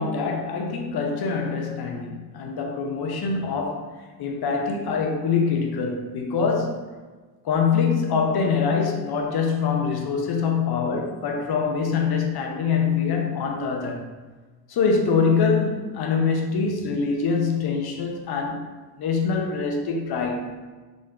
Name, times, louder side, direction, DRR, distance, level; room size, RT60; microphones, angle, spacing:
voice 1, 0.0-3.9 4.2-6.9 7.4-14.0 14.7-20.5, left 5 dB, 55° left, 2 dB, 0.8 m, -24 dB
3.8 x 2.6 x 3.3 m, 1.3 s
hypercardioid pair, 50°, 45 cm